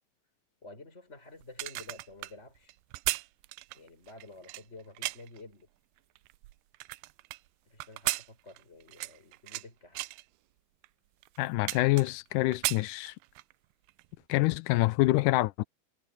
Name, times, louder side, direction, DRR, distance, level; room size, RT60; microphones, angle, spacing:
voice 1, 0.6-2.8 3.7-5.7 7.7-10.0, left 3 dB, 15° left, 6.4 m, -50 dB
sound 1, 1.4-5.4 6.0-7.4 7.8-9.7 10.0-10.2 10.8-10.9 11.2-12.3 12.5-13.5 13.9-14.1, right 21 dB, 90° right, 2.5 m, -36 dB
voice 2, 11.4-13.1 14.3-15.6, left 19 dB, 85° left, 1.9 m, -26 dB
omnidirectional pair, 4.4 m